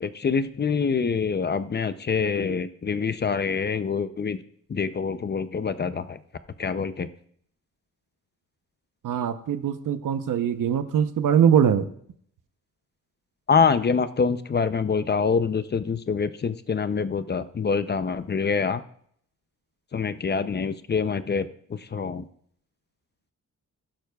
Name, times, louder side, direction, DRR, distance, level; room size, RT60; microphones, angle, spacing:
voice 1, 0.0-4.4 4.7-6.2 6.6-7.1 13.5-18.8 19.9-21.5 21.9-22.2, left 5 dB, 30° left, 12 dB, 0.5 m, -25 dB
voice 2, 9.0-11.9, right 8 dB, 75° right, 10 dB, 0.8 m, -22 dB
15.5 x 12.0 x 2.3 m, 0.64 s
wide cardioid pair, 125°, 32 cm